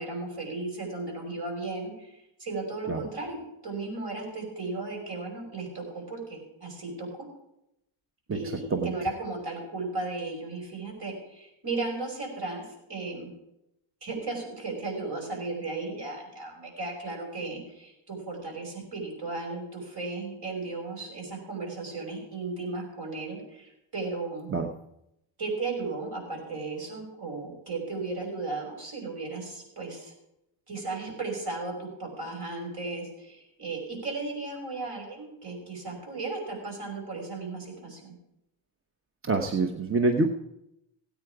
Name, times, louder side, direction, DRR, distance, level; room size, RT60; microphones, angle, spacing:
voice 1, 0.0-3.4 3.6-7.1 8.3-12.6 12.9-13.3 14.0-24.5 25.4-30.1 30.7-38.1, right 3 dB, 50° right, 1 dB, 5.9 m, -35 dB
voice 2, 39.3-40.3, right 3 dB, 25° right, 5 dB, 1.0 m, -25 dB
17.0 x 9.0 x 4.9 m, 0.84 s
cardioid pair, 85°, 48 cm